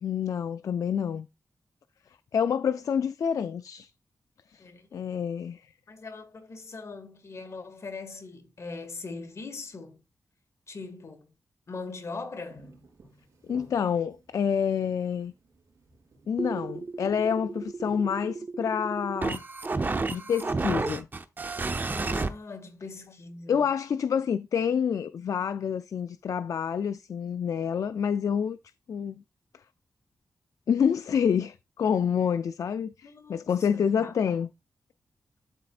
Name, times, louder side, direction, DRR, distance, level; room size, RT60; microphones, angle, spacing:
voice 1, 0.0-1.3 2.3-3.9 4.5-4.6 4.9-5.6 13.4-15.3 16.3-19.4 20.1-21.1 23.5-28.6 28.9-29.2 30.7-34.5, left 7 dB, 70° left, 0.3 m, -28 dB
voice 2, 5.9-10.0 10.7-11.3 11.7-12.7 21.9-23.6 33.0-34.1, left 3 dB, 50° left, 1.8 m, -41 dB
sound 1, 12.4-18.3, right 2 dB, 70° right, 3.8 m, -56 dB
sound 2, 16.4-22.3, right 3 dB, 30° right, 0.7 m, -32 dB
12.0 x 4.2 x 2.4 m
wide cardioid pair, 85°, 6 cm